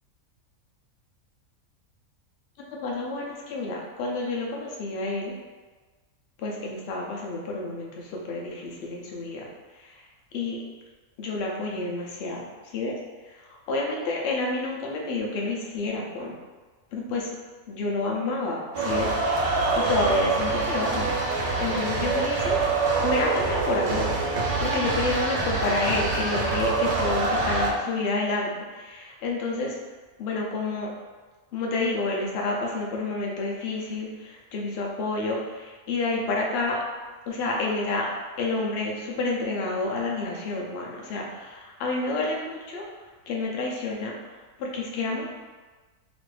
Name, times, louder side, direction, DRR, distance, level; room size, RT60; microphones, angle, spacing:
voice 1, 2.7-5.3 6.4-9.5 9.8-10.0 10.3-10.6 11.2-13.0 13.3-13.4 13.7-16.3 16.9-17.3 17.7-22.6 23.0-29.8 30.2-30.9 31.5-36.8 37.3-38.1 38.4-42.8 43.3-44.1 44.6-45.3, left 3 dB, 60° left, -1 dB, 0.7 m, -29 dB
sound 1, 18.7-27.7, right 3 dB, 85° right, 1.1 m, -25 dB
3.0 x 2.5 x 3.2 m, 1.3 s
omnidirectional pair, 1.6 m